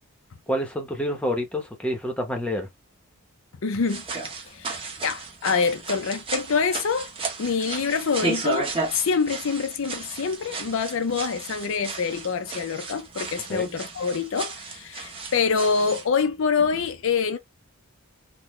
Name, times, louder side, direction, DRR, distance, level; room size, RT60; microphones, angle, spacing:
voice 1, 0.5-2.7 13.5-13.7, equal, 5° left, 0.8 m, -28 dB
voice 2, 3.6-4.0 4.5-7.1 7.4-17.4, left 5 dB, 60° left, 0.5 m, -26 dB
sound 1, 3.8-16.1, right 3 dB, 25° right, 0.9 m, -34 dB
3.8 x 2.2 x 3.0 m
head